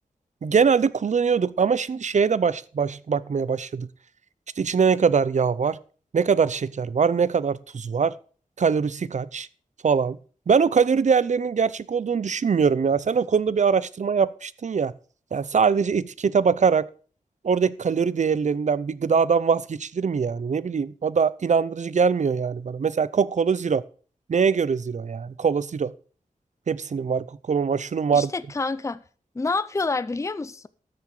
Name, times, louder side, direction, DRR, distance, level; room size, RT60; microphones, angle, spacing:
voice 1, 0.4-3.9 4.6-5.8 6.1-8.1 8.6-9.5 9.8-10.2 10.5-14.9 15.3-16.9 17.4-23.8 24.3-25.9 26.7-28.3, right 6 dB, 60° right, 0.6 m, -22 dB
voice 2, 28.1-29.0 29.4-30.7, left 3 dB, 20° left, 0.5 m, -27 dB
13.5 x 7.7 x 4.8 m
wide cardioid pair, 115°, 14 cm